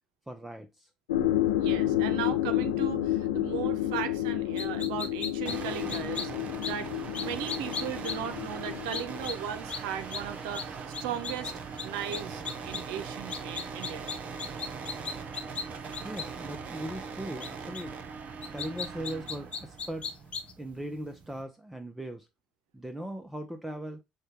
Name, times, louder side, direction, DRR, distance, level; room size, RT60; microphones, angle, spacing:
voice 1, 0.3-0.9 2.0-2.1 16.0-18.0 18.5-20.1 20.6-22.3 22.7-24.0, right 1 dB, 10° right, 0.6 m, -39 dB
sound 1, 1.1-9.2, left 13 dB, 90° left, 0.6 m, -30 dB
voice 2, 1.6-6.9 7.2-11.5 11.8-14.1, right 9 dB, 80° right, 0.6 m, -37 dB
sound 2, 4.6-5.5 5.9-6.3 6.6-6.7 7.1-8.1 8.9-9.3 9.7-9.8 10.1-10.2 10.5-10.6 10.9-11.5 11.8-11.9 12.1-12.8 13.3-15.6 15.9-16.2 17.4-17.5 17.7-17.8 18.4-20.5, left 6 dB, 40° left, 0.6 m, -35 dB
sound 3, 5.5-21.4, right 5 dB, 50° right, 0.9 m, -41 dB
6.4 x 2.3 x 3.2 m
hypercardioid pair, 60°, 3 cm